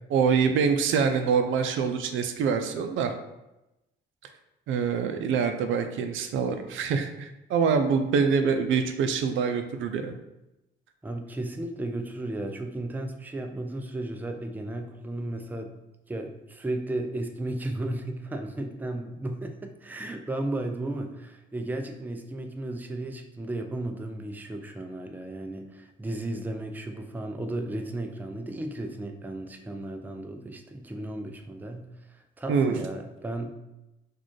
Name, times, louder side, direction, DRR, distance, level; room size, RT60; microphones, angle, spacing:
voice 1, 0.1-3.1 4.7-10.2 32.5-32.8, right 6 dB, 80° right, 7 dB, 0.4 m, -25 dB
voice 2, 11.0-15.7 16.1-33.5, right 1 dB, 10° right, 4 dB, 0.4 m, -34 dB
3.9 x 2.4 x 3.1 m, 0.94 s
cardioid pair, 90°, 20 cm